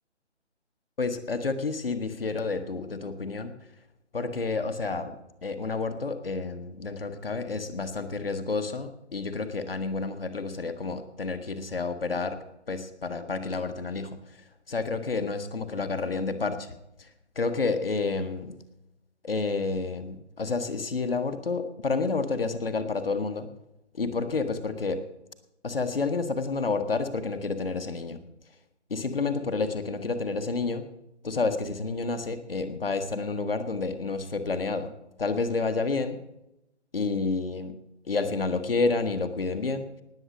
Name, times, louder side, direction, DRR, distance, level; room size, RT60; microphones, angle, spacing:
voice 1, 1.0-3.5 4.1-5.1 5.4-12.4 12.7-17.1 17.3-18.5 19.2-23.5 23.9-25.0 25.6-28.2 28.9-30.9 31.2-34.9 35.2-36.2 36.9-37.7 38.1-39.9, left 4 dB, 55° left, 8 dB, 1.3 m, -30 dB
19.0 x 7.3 x 6.3 m, 0.87 s
figure-of-eight pair, 150°, 35 cm